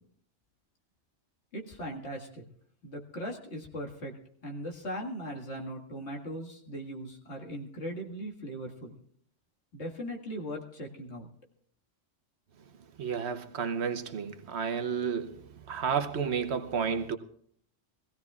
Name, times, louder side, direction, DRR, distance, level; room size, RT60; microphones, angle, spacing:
voice 1, 1.5-2.5 2.8-4.1 4.4-9.0 9.7-11.3, equal, 70° left, 2.2 m, -39 dB
voice 2, 13.0-17.2, right 6 dB, 65° right, 1.1 m, -31 dB
23.0 x 16.0 x 2.4 m
omnidirectional pair, 1.2 m